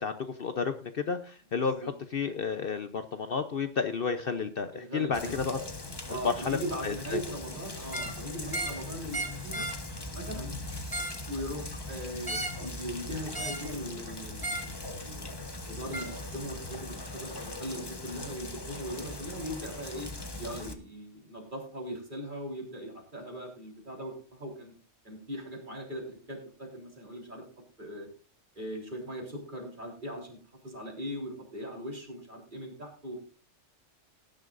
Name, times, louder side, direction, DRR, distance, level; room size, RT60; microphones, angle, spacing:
voice 1, 0.0-5.6 6.1-6.6 6.8-7.2, left 5 dB, 50° left, 9 dB, 0.9 m, -31 dB
voice 2, 1.6-1.9 4.7-5.3 6.1-9.7 10.1-10.5 11.3-15.4 15.7-20.1 20.4-24.7 25.0-27.5 27.8-28.1 28.6-30.4 30.6-33.2, equal, 40° right, 0 dB, 3.8 m, -39 dB
Rain, 5.1-20.7, left 2 dB, 20° left, 1.2 m, -40 dB
sound 1, 7.8-8.2 8.5-8.8 9.1-9.8 10.7-11.2 12.2-12.6 13.3-13.7 14.4-14.7 15.9-16.1, right 1 dB, 20° right, 1.4 m, -35 dB
19.0 x 10.5 x 2.6 m, 0.37 s
omnidirectional pair, 1.3 m